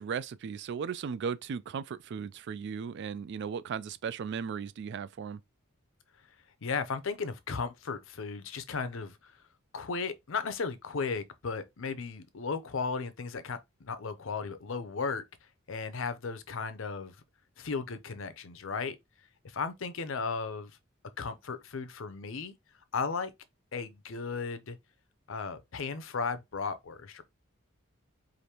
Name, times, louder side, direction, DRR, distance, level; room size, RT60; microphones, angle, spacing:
voice 1, 0.0-5.4, right 6 dB, 55° right, 0.3 m, -36 dB
voice 2, 6.6-9.3 9.7-15.2 15.7-17.2 17.6-19.0 19.4-20.7 21.2-22.6 22.9-23.3 23.7-24.8 25.3-27.2, left 5 dB, 65° left, 0.6 m, -35 dB
4.9 x 2.6 x 2.9 m
head